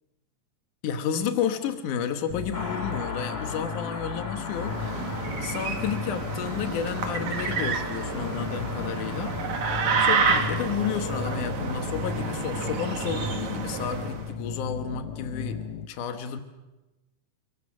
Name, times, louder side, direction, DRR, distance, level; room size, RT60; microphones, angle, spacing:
voice 1, 0.8-4.8 5.4-9.4 10.0-16.4, left 7 dB, 85° left, 2.8 m, -31 dB
sound 1, 2.3-15.9, left 8 dB, 70° left, 2.2 m, -36 dB
Car passing by, 2.5-12.5 12.7-12.8, left 2 dB, 20° left, 3.0 m, -40 dB
sound 2, 4.5-14.3, right 5 dB, 70° right, 3.3 m, -29 dB
30.0 x 24.0 x 6.3 m
omnidirectional pair, 3.5 m